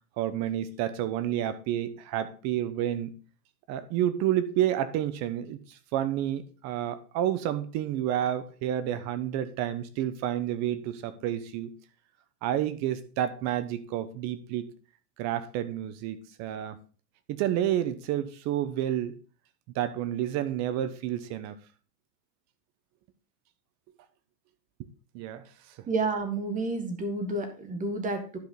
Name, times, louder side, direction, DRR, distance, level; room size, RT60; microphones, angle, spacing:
voice 1, 0.2-3.1 3.7-11.7 12.4-14.7 15.2-16.8 17.3-19.2 19.7-21.6 25.1-25.4, right 11 dB, 35° right, 0.9 m, -30 dB
voice 2, 25.9-28.4, right 3 dB, 15° right, 1.8 m, -30 dB
11.5 x 5.0 x 3.8 m
hypercardioid pair, 130°, 47 cm